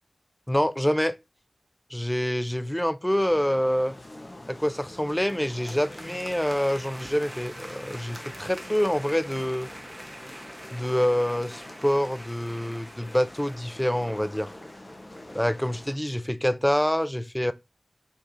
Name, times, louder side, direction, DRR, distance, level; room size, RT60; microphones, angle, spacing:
voice 1, 0.5-1.2 1.9-4.0 4.5-9.7 10.7-14.5 15.3-17.5, equal, 10° left, 0.3 m, -26 dB
sound 1, 3.1-16.0, left 1 dB, 35° left, 0.9 m, -45 dB
sound 2, 5.2-15.5, equal, 10° right, 0.9 m, -45 dB
5.2 x 3.1 x 2.6 m
wide cardioid pair, 50°, 0 cm